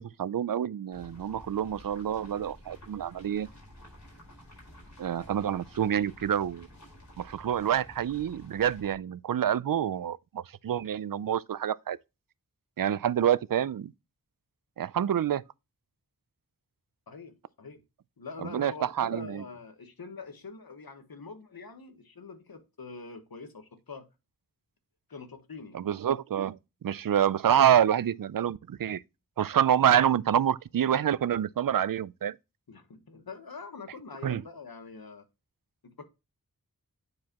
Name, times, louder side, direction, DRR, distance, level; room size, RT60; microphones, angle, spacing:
voice 1, 0.0-3.5 5.0-6.7 7.2-12.0 12.8-13.9 14.8-15.4 18.4-19.4 25.7-29.0 29.4-32.4 34.2-34.4, right 9 dB, 70° right, 0.5 m, -27 dB
sound 1, 0.9-8.9, left 1 dB, 50° left, 4.5 m, -51 dB
voice 2, 17.1-17.8 18.2-24.1 25.1-25.8 32.7-35.2 35.8-36.0, left 4 dB, 85° left, 1.3 m, -44 dB
9.5 x 4.8 x 2.9 m
wide cardioid pair, 40°, 35 cm